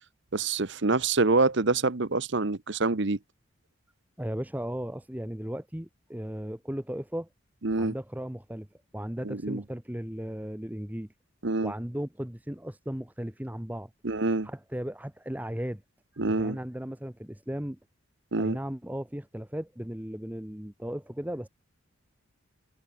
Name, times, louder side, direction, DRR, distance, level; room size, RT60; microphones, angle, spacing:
voice 1, 0.3-3.2 7.6-7.9 9.2-9.6 11.4-11.7 14.0-14.5 16.2-16.6 18.3-18.6, right 3 dB, 55° right, 1.0 m, -26 dB
voice 2, 4.2-7.3 7.8-8.7 8.9-11.1 11.6-13.9 14.4-15.8 16.1-17.8 18.4-21.5, equal, 10° right, 1.0 m, -36 dB
head